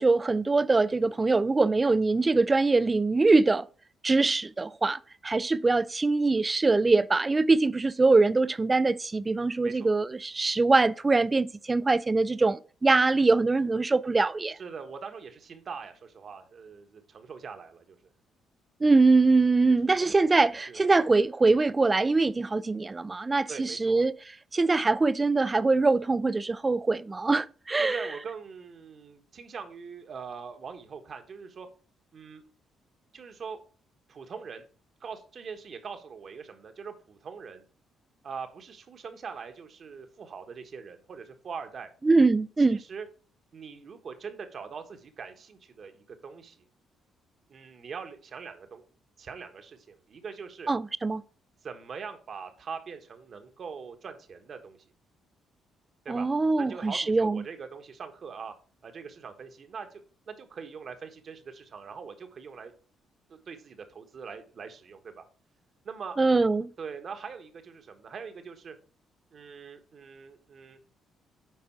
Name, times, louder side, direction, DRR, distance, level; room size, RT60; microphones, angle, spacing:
voice 1, 0.0-3.7 4.0-14.6 18.8-24.1 24.5-28.1 42.0-42.8 50.7-51.2 56.1-57.4 66.2-66.7, right 3 dB, 25° right, 0.4 m, -23 dB
voice 2, 14.6-18.0 20.7-20.8 23.5-24.0 27.8-31.7 32.1-32.4 33.1-33.6 34.1-34.7 35.0-37.6 38.2-41.9 42.7-43.1 43.5-46.6 47.5-48.8 49.2-50.7 51.6-54.8 56.0-56.3 56.6-58.5 58.8-62.7 63.3-65.3 65.8-66.2 66.8-68.7 69.3-70.8, right 5 dB, 50° right, 1.4 m, -42 dB
9.5 x 3.8 x 4.7 m
cardioid pair, 85°, 0 cm